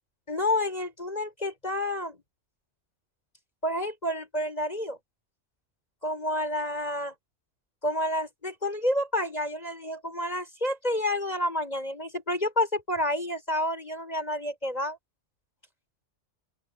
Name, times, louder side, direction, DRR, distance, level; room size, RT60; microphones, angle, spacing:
voice 1, 0.3-2.2 3.6-5.0 6.0-7.1 7.8-15.0, left 1 dB, 35° left, 7.7 m, -29 dB
open air
omnidirectional pair, 1.2 m